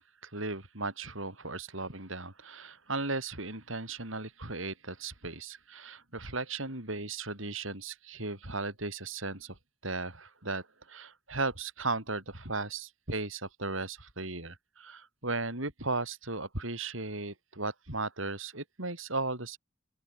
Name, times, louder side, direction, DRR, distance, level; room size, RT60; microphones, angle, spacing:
voice 1, 0.0-9.6 9.8-19.6, right 3 dB, 70° right, 6.8 m, -36 dB
open air
head